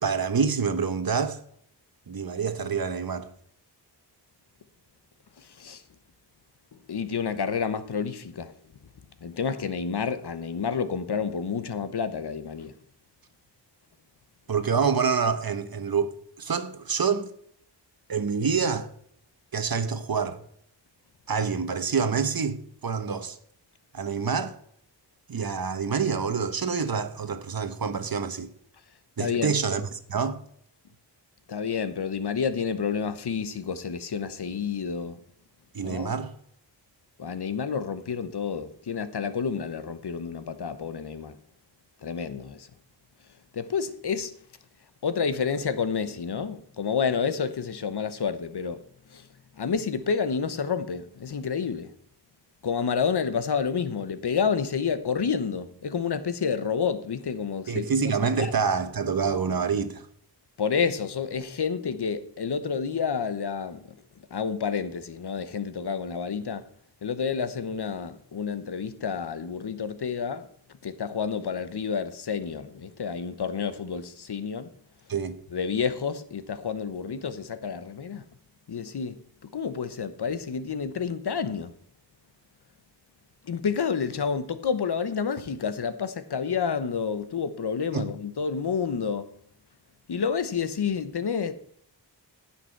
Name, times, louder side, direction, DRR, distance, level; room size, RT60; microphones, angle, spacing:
voice 1, 0.0-1.4 2.1-3.3 14.5-17.3 18.1-18.9 19.5-20.4 21.3-23.4 23.9-24.6 25.3-28.5 29.2-30.4 35.7-36.3 57.7-60.0 75.1-75.4 87.9-88.1, right 5 dB, 55° right, 1.1 m, -27 dB
voice 2, 5.4-5.8 6.9-8.5 9.2-12.7 29.2-29.5 31.5-35.2 35.8-36.1 37.2-41.3 42.0-42.7 43.5-44.4 45.0-48.8 49.1-49.2 49.6-51.9 52.6-58.1 58.4-58.5 60.6-63.8 64.3-66.6 67.0-70.5 70.8-74.7 75.5-78.2 78.7-79.2 79.5-81.7 83.5-89.3 90.1-91.5, left 6 dB, 65° left, 1.0 m, -29 dB
16.0 x 5.9 x 4.6 m
wide cardioid pair, 80°, 42 cm